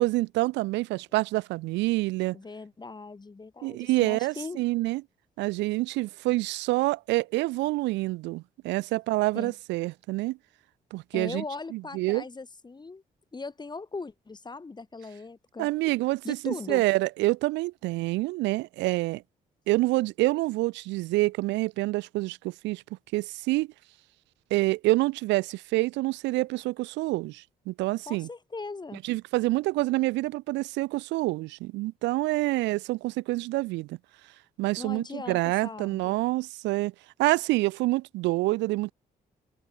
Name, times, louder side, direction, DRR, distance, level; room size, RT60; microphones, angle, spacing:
voice 1, 0.0-2.4 3.6-5.0 5.4-10.4 10.9-11.4 11.7-12.2 15.6-19.2 19.7-22.8 23.1-23.7 24.5-28.3 29.0-34.0 34.6-36.9 37.2-38.9, right 20 dB, 85° right, 0.4 m, -27 dB
voice 2, 2.3-4.6 9.3-9.5 11.1-13.0 13.3-15.7 16.2-16.8 28.1-29.0 34.8-36.2, left 3 dB, 25° left, 0.9 m, -39 dB
supercardioid pair, 60°, 18 cm